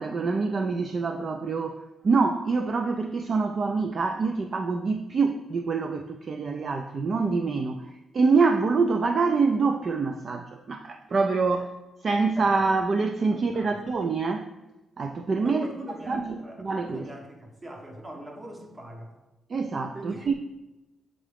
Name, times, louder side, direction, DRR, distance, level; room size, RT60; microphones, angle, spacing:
voice 1, 0.0-11.7 12.0-14.5 15.0-15.7 16.1-17.1 19.5-20.3, right 4 dB, 40° right, 5 dB, 0.3 m, -25 dB
voice 2, 13.3-13.8 15.4-19.1 19.9-20.3, right 1 dB, 20° right, 2 dB, 1.0 m, -41 dB
7.5 x 3.7 x 3.4 m, 1.0 s
cardioid pair, 135°, 0 cm